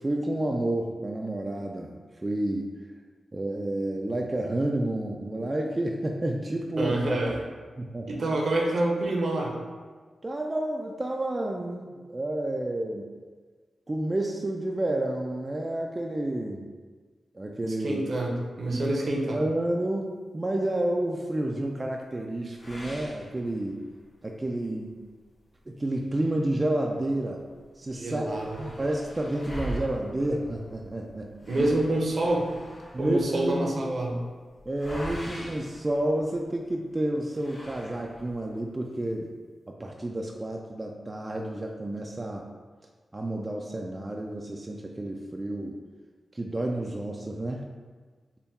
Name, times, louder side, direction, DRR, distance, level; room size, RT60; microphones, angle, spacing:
voice 1, 0.0-1.9 2.2-2.7 3.3-6.9 7.8-8.1 10.2-13.1 13.9-16.7 17.3-18.0 18.7-18.8 19.3-23.8 24.2-25.0 25.7-27.4 27.8-28.3 28.6-31.3 32.9-33.8 34.7-39.3 39.7-42.4 43.1-45.7 46.3-47.6, right 1 dB, 30° right, 0 dB, 0.3 m, -30 dB
voice 2, 6.8-7.4 8.1-9.6 17.8-19.4 28.0-28.7 31.5-32.5 33.0-34.3, right 1 dB, 65° right, 0 dB, 0.6 m, -27 dB
sound 1, 22.6-24.0 24.5-24.6 25.0-25.1 25.9-27.2 27.6-27.7 27.9-36.6 37.3-38.5, equal, 50° left, 1.3 m, -42 dB
3.5 x 2.2 x 4.1 m, 1.5 s
cardioid pair, 55°, 0 cm